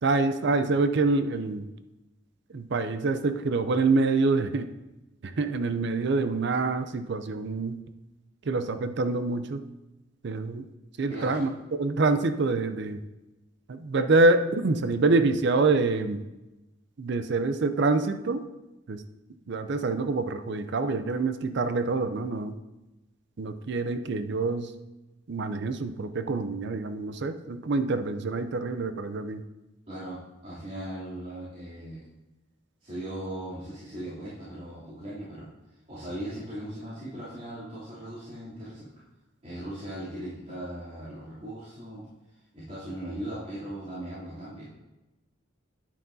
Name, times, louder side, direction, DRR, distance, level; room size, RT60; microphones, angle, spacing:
voice 1, 0.0-1.7 2.5-4.7 5.2-7.8 8.4-9.6 10.2-10.7 11.0-11.5 11.8-13.0 13.7-16.2 17.0-18.5 18.9-19.0 19.5-22.6 23.4-24.7 25.3-29.4, right 3 dB, 60° right, 10 dB, 0.5 m, -26 dB
voice 2, 11.1-11.4 29.9-32.0 32.8-35.5 35.9-38.9 39.4-42.1 42.5-44.6, right 1 dB, 40° right, -13 dB, 3.0 m, -38 dB
10.0 x 9.2 x 2.7 m, 1.0 s
head